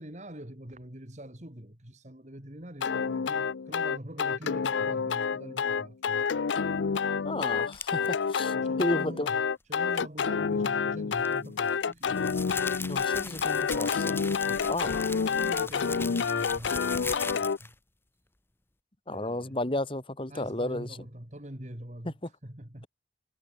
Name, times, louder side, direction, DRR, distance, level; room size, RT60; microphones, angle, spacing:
voice 1, 0.0-6.4 8.5-9.4 9.7-13.1 14.4-17.7 19.1-19.6 20.3-22.2 22.4-22.9, right 1 dB, 40° right, 3.4 m, -44 dB
sound 1, 2.8-17.6, left 6 dB, 80° left, 0.5 m, -29 dB
voice 2, 7.2-9.3 12.9-14.2 14.7-15.0 19.1-20.9 22.1-22.2, left 1 dB, 30° left, 1.8 m, -32 dB
sound 2, 7.7-8.1 11.2-17.7, left 4 dB, 10° left, 1.1 m, -39 dB
head